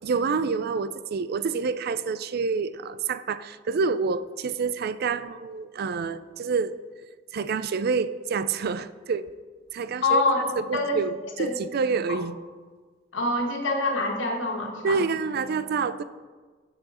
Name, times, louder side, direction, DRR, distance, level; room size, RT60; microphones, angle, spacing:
voice 1, 0.0-6.7 7.3-9.3 9.7-10.2 10.6-12.4 14.8-16.0, right 5 dB, 55° right, 15 dB, 0.4 m, -27 dB
voice 2, 10.0-10.4 10.7-11.0 11.4-11.6 12.1-12.2 13.1-15.0, left 2 dB, 85° left, 1 dB, 1.6 m, -25 dB
12.5 x 5.6 x 4.2 m, 1.4 s
head